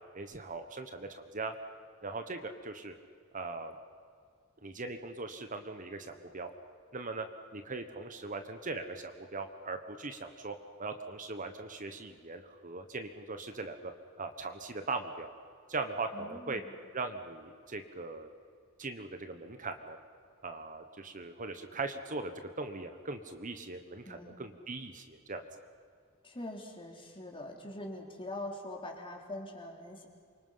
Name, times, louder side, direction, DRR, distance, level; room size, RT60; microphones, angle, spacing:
voice 1, 0.1-1.5 2.0-2.9 3.3-3.7 4.6-6.5 6.9-7.3 7.5-13.9 14.2-15.3 15.7-16.6 16.9-18.3 18.8-20.0 20.4-22.3 22.6-25.4, right 3 dB, 40° right, 7 dB, 1.3 m, -40 dB
voice 2, 16.1-16.7 24.0-24.3 26.2-30.1, left 1 dB, 25° left, 1 dB, 3.5 m, -43 dB
28.0 x 25.0 x 5.8 m, 2.2 s
head